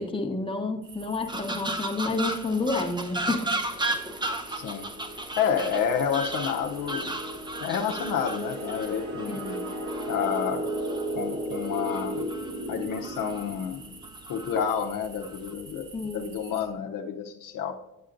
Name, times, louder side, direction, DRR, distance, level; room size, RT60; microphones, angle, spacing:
voice 1, 0.0-3.5 9.3-9.6 15.9-16.4, left 3 dB, 15° left, 3 dB, 1.0 m, -30 dB
sound 1, 0.8-16.7, right 3 dB, 75° right, 2.2 m, -48 dB
sound 2, 1.3-11.0 11.5-12.6 12.9-13.5 14.0-14.6 15.2-15.5, right 2 dB, 15° right, 0.7 m, -35 dB
sound 3, 3.6-14.1, right 1 dB, 50° right, 2.8 m, -35 dB
voice 2, 4.5-4.9 5.4-7.1 7.6-9.5 10.1-10.7 11.1-12.2 12.7-13.8 14.3-17.8, left 7 dB, 70° left, 4 dB, 0.8 m, -29 dB
8.6 x 8.1 x 2.5 m, 0.96 s
supercardioid pair, 80°, 33 cm